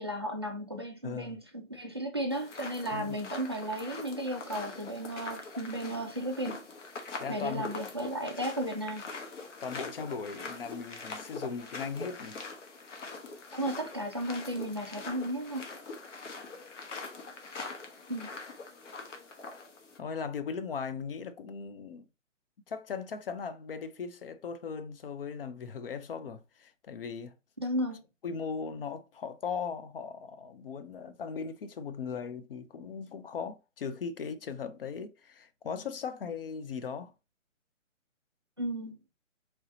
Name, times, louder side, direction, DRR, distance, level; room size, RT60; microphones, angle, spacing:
voice 1, 0.0-6.6 7.3-9.1 13.5-15.7 18.1-18.3 27.6-28.0 38.6-39.0, right 1 dB, 20° right, 0.3 m, -34 dB
voice 2, 1.0-1.4 2.9-3.2 7.2-7.7 9.6-12.4 20.0-22.1 22.7-27.3 28.2-37.1, left 6 dB, 45° left, 0.5 m, -38 dB
sound 1, 2.3-20.0, left 4 dB, 65° left, 1.3 m, -43 dB
4.5 x 3.1 x 2.6 m
figure-of-eight pair, 140°, 39 cm